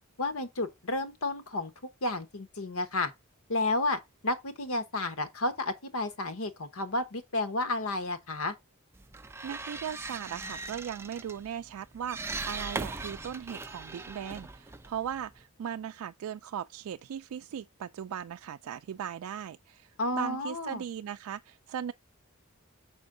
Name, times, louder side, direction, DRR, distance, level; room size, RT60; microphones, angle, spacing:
voice 1, 0.2-1.7 2.0-3.1 3.5-8.5 20.0-20.8, left 2 dB, 80° left, 1.1 m, -31 dB
sound 1, 8.9-15.4, right 3 dB, 10° right, 0.4 m, -40 dB
voice 2, 9.4-21.9, right 8 dB, 85° right, 0.3 m, -38 dB
6.2 x 5.3 x 3.7 m
head